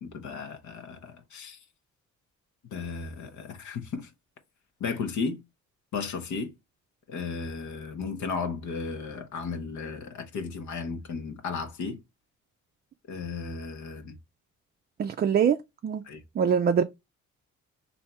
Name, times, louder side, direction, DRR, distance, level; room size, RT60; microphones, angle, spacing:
voice 1, 0.0-1.6 2.7-4.1 4.8-5.4 5.9-6.5 7.1-12.0 13.1-14.2 16.0-16.2, left 5 dB, 70° left, 0.9 m, -34 dB
voice 2, 15.0-15.6 15.8-16.0 16.4-16.8, right 7 dB, 35° right, 0.4 m, -23 dB
3.3 x 2.7 x 4.1 m
cardioid pair, 90°, 30 cm